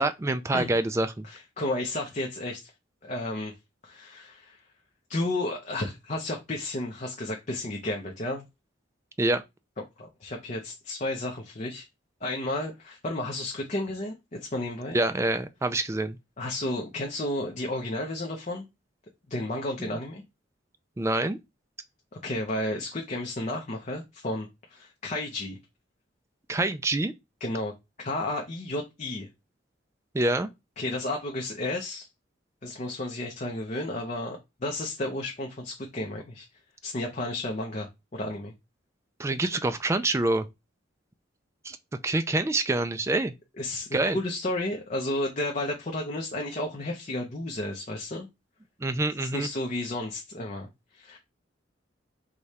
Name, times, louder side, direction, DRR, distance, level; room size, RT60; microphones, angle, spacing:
voice 1, 0.0-1.3 9.2-9.4 14.9-16.2 19.8-19.9 21.0-21.4 26.5-27.1 30.1-30.5 39.2-40.5 41.6-41.8 42.0-43.3 43.9-44.2 48.8-49.5, right 2 dB, 15° right, 0.3 m, -26 dB
voice 2, 1.2-2.7 3.0-3.5 3.8-4.6 5.1-8.4 10.0-11.8 12.2-15.0 16.4-18.6 19.3-20.2 22.2-25.6 27.4-27.7 28.0-29.3 30.8-32.1 32.6-36.5 36.8-37.9 38.1-38.5 43.6-48.3 49.2-51.2, left 1 dB, 40° left, 0.6 m, -32 dB
4.9 x 2.3 x 4.1 m
head